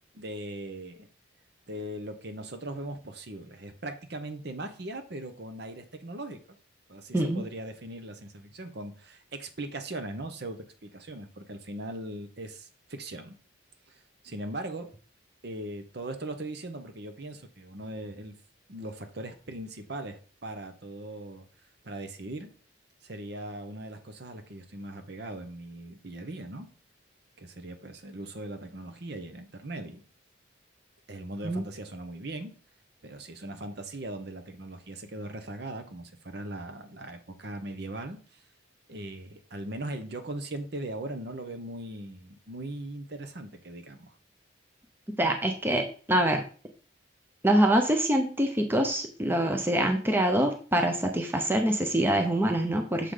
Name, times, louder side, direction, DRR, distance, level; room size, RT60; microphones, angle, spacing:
voice 1, 0.1-1.1 1.7-6.4 6.9-13.4 13.9-14.9 15.4-18.4 18.7-21.5 21.8-22.5 23.0-26.7 27.4-30.0 31.1-32.5 33.0-38.4 38.9-44.1, right 1 dB, 55° right, 7 dB, 0.9 m, -39 dB
voice 2, 45.2-46.4 47.4-53.1, right 1 dB, 10° right, 4 dB, 0.7 m, -25 dB
6.6 x 3.9 x 4.9 m, 0.40 s
head